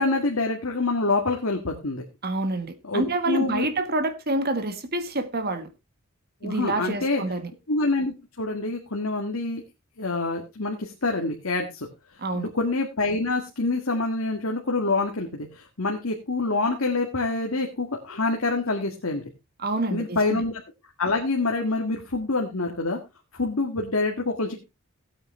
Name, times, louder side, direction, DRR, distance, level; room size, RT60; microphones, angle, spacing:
voice 1, 0.0-2.1 2.9-3.7 6.4-7.2 7.7-9.6 10.0-11.9 12.3-19.3 19.9-20.5 21.0-23.0 23.3-24.5, left 3 dB, 75° left, 1.9 m, -26 dB
voice 2, 2.2-5.7 6.4-7.5 12.2-12.5 19.6-20.4, right 2 dB, 45° right, 1.5 m, -27 dB
17.0 x 8.7 x 3.2 m
head